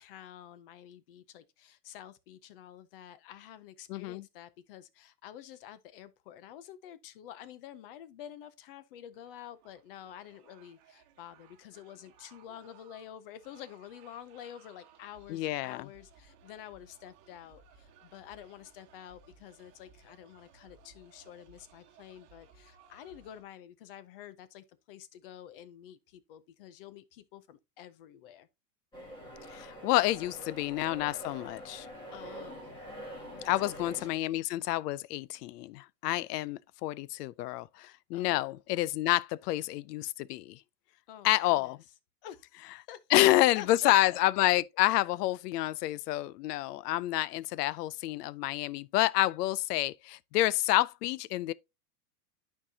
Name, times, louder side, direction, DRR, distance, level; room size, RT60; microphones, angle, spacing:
voice 1, 0.0-28.5 30.2-30.4 32.1-32.8 33.3-34.2 38.1-38.6 41.1-41.8 42.2-44.2, left 10 dB, 40° left, 0.5 m, -49 dB
voice 2, 3.9-4.2 15.3-15.9 29.5-31.9 33.4-40.6 41.2-41.8 43.1-51.5, left 16 dB, 80° left, 0.6 m, -28 dB
sound 1, 9.1-23.4, right 6 dB, 40° right, 1.3 m, -61 dB
sound 2, 28.9-34.1, equal, 10° left, 1.8 m, -45 dB
11.5 x 4.7 x 2.7 m
supercardioid pair, 180°, 47 cm